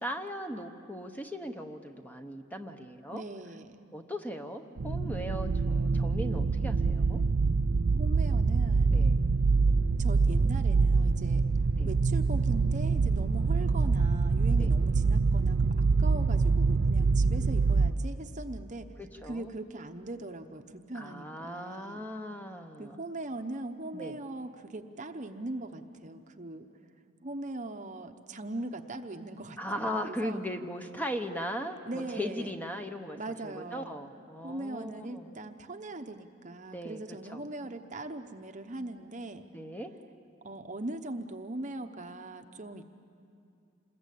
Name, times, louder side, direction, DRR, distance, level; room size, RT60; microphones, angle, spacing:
voice 1, 0.0-3.2 3.9-7.2 8.9-9.3 11.8-11.9 14.6-14.7 19.0-19.5 20.9-23.0 23.9-24.2 29.6-33.2 33.4-35.3 36.7-37.0 37.3-37.4 39.5-39.9, equal, 10° left, 5 dB, 0.9 m, -38 dB
voice 2, 3.1-3.8 7.9-9.1 10.0-11.4 11.8-15.7 16.0-18.9 19.2-22.0 22.8-26.7 27.2-30.4 31.9-32.6 33.2-34.0 34.4-39.4 40.4-42.9, right 2 dB, 35° right, 7 dB, 0.9 m, -40 dB
sound 1, 4.8-17.9, right 4 dB, 60° right, 0.5 m, -25 dB
27.5 x 21.0 x 8.5 m, 2.5 s
head